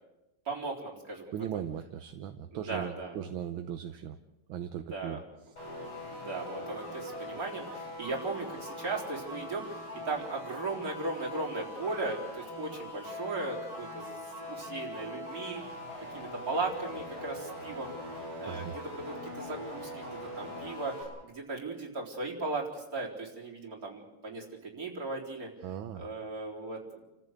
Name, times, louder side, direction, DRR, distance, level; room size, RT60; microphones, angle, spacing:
voice 1, 0.4-1.5 2.5-3.2 4.9-5.2 6.1-15.6 16.1-17.9 18.4-25.5 25.9-27.1, right 3 dB, 40° right, -2 dB, 4.5 m, -37 dB
voice 2, 1.3-4.2 4.5-5.2 18.5-18.7 25.6-26.0, right 9 dB, 75° right, 8 dB, 1.7 m, -38 dB
sound 1, 5.6-21.0, left 1 dB, 70° left, 8.6 m, -42 dB
29.5 x 14.5 x 8.2 m, 1.0 s
omnidirectional pair, 2.3 m